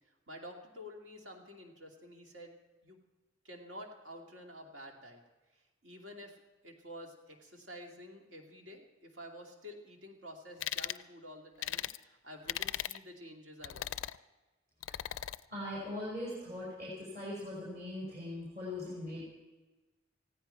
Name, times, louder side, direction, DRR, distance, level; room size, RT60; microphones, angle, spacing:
voice 1, 0.1-2.6 2.8-3.0 3.4-5.2 5.5-13.9, equal, 70° right, 1 dB, 2.5 m, -50 dB
sound 1, 10.6-11.0 11.6-12.0 12.5-13.0 13.6-14.2 14.8-15.4, left 12 dB, 85° left, 0.4 m, -37 dB
voice 2, 15.5-19.2, left 1 dB, 45° right, -7 dB, 4.9 m, -40 dB
19.5 x 15.5 x 4.5 m, 1.2 s
head